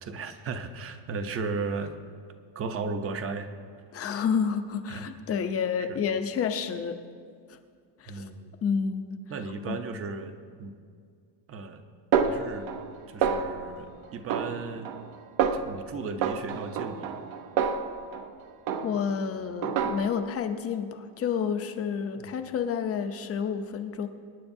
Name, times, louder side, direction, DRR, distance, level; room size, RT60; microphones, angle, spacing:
voice 1, 0.0-1.9 2.5-3.5 4.9-5.1 5.8-6.0 8.1-8.5 9.3-10.3 10.6-10.8 11.5-11.8 12.2-12.7 13.1-14.9 15.5-17.2 22.2-22.3, right 4 dB, 30° right, 8 dB, 0.7 m, -35 dB
voice 2, 3.9-7.0 7.5-7.6 8.0-8.3 8.6-9.2 9.7-9.8 18.8-24.1, left 6 dB, 30° left, 8 dB, 0.6 m, -29 dB
Snare drum, 12.1-12.9 13.2-13.8 14.3-15.1 15.4-15.8 16.2-18.3 18.7-19.2 19.6-20.3, right 7 dB, 75° right, 0.9 m, -28 dB
24.5 x 9.9 x 2.7 m, 2.1 s
cardioid pair, 160°, 48 cm